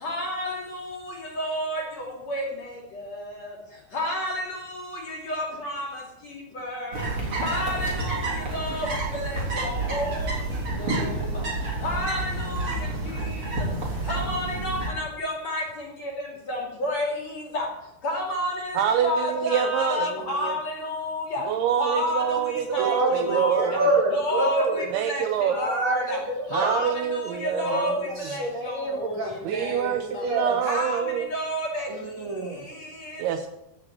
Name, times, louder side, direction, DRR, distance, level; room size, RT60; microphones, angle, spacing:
voice 1, 0.0-1.8 2.3-2.5 3.0-3.1 3.9-5.9 6.5-7.0 7.4-8.9 9.1-10.1 10.9-11.2 11.8-12.7 14.1-15.6 16.5-17.1 17.5-17.7 18.0-21.4 21.8-22.2 22.7-23.7 24.1-26.2 26.5-27.9 28.2-29.2 29.5-30.2 30.6-31.0 31.3-31.9, left 1 dB, 40° left, 0 dB, 3.3 m, -30 dB
Fotja i altres, 6.9-14.9, right 2 dB, 30° right, 3.8 m, -29 dB
voice 2, 18.7-20.6 21.4-23.9 24.9-25.6 26.5-28.3 29.4-31.3 33.2-33.5, right 9 dB, 90° right, 8 dB, 2.3 m, -26 dB
voice 3, 22.8-24.9 25.5-26.7 27.5-29.4 30.0-30.5 31.9-32.7, right 2 dB, 50° right, 0 dB, 2.4 m, -27 dB
15.0 x 6.4 x 9.2 m, 0.87 s
omnidirectional pair, 5.4 m